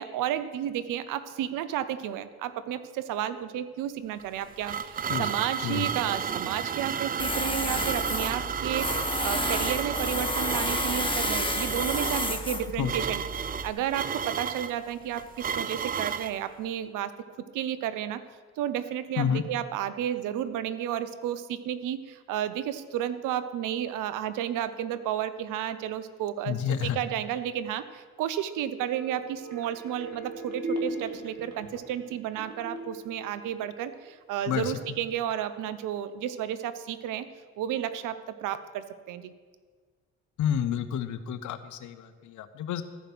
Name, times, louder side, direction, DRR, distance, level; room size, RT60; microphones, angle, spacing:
voice 1, 0.0-17.1 17.5-18.2 18.6-37.3 37.6-39.3, right 10 dB, 75° right, 13 dB, 0.7 m, -32 dB
sound 1, 4.2-16.4, right 7 dB, 30° right, 0.4 m, -32 dB
Tools, 7.2-13.7, left 2 dB, 15° left, 1.2 m, -31 dB
voice 2, 26.5-27.0 34.5-35.0 40.4-42.8, left 9 dB, 65° left, 11 dB, 0.8 m, -30 dB
sound 2, 28.5-34.1 34.5-34.6, right 2 dB, 55° right, 2.6 m, -39 dB
14.0 x 5.1 x 5.9 m, 1.5 s
supercardioid pair, 55°, 32 cm